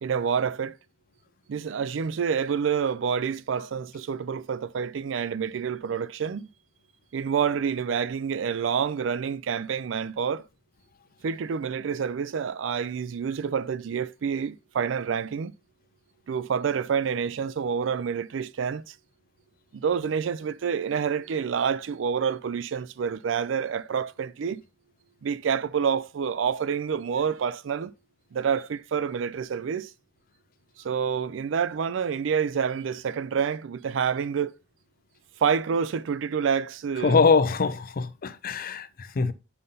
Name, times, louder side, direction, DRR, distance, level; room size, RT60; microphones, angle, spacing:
voice 1, 0.0-0.7 1.5-6.5 7.1-10.4 11.2-15.5 16.3-18.9 19.7-24.6 25.2-27.9 28.3-29.9 30.8-34.5 35.4-37.2, right 7 dB, 75° right, 0.4 m, -28 dB
voice 2, 37.0-39.3, left 4 dB, 50° left, 0.5 m, -23 dB
5.6 x 5.4 x 3.9 m
head